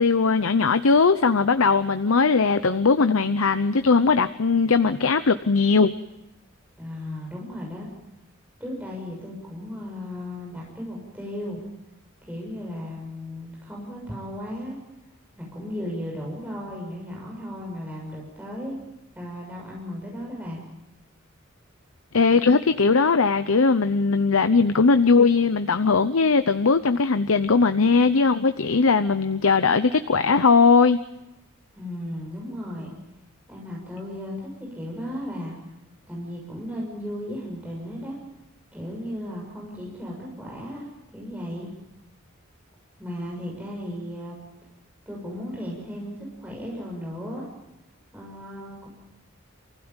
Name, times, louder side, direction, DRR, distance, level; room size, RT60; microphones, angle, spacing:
voice 1, 0.0-5.9 22.1-31.0, left 4 dB, 90° left, 10 dB, 0.8 m, -19 dB
voice 2, 6.8-7.9 8.6-11.6 12.2-14.8 15.3-18.8 19.1-20.6 31.7-32.9 33.5-35.5 36.1-38.2 38.7-40.9 41.1-41.7 43.0-44.4 45.0-47.5 48.1-48.9, equal, 10° right, -3 dB, 6.7 m, -35 dB
28.0 x 16.0 x 9.0 m, 0.92 s
head